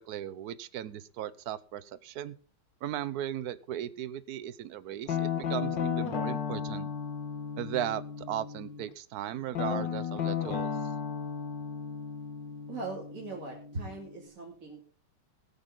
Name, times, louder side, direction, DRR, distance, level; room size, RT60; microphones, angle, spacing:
voice 1, 0.0-2.3 2.8-6.9 7.6-10.7, right 11 dB, 65° right, 16 dB, 0.9 m, -37 dB
Guitar, 5.1-8.9 9.5-14.3, left 7 dB, 60° left, 2.0 m, -34 dB
voice 2, 12.7-14.8, right 3 dB, 40° right, -3 dB, 2.9 m, -40 dB
18.0 x 8.9 x 3.8 m, 0.40 s
omnidirectional pair, 2.4 m